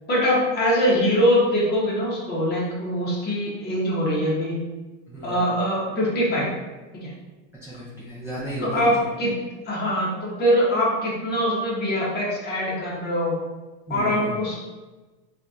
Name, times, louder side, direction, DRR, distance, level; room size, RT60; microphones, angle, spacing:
voice 1, 0.1-4.6 5.2-6.5 6.9-7.1 8.6-9.3 9.6-13.4 13.9-14.6, equal, 25° left, -5 dB, 1.2 m, -23 dB
voice 2, 5.1-5.5 7.6-8.9 13.9-14.4, equal, 5° right, -8 dB, 0.5 m, -33 dB
4.2 x 2.5 x 2.7 m, 1.2 s
supercardioid pair, 130°, 37 cm